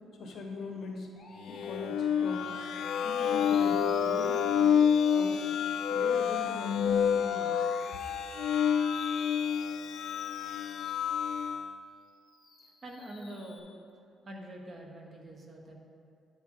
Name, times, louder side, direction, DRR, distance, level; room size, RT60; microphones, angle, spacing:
voice 1, 0.2-1.1 1.5-2.5 3.0-5.5 5.9-7.6, left 2 dB, 55° left, 2 dB, 1.1 m, -41 dB
Musical instrument, 1.2-11.6 12.0-13.6, left 2 dB, 35° left, 1.5 m, -54 dB
sound 1, 1.5-11.7, left 8 dB, 80° left, 0.3 m, -28 dB
voice 2, 12.6-13.7 14.2-15.7, right 1 dB, 30° right, 1 dB, 1.0 m, -45 dB
9.8 x 6.1 x 3.7 m, 2.5 s
cardioid pair, 165°, 0 cm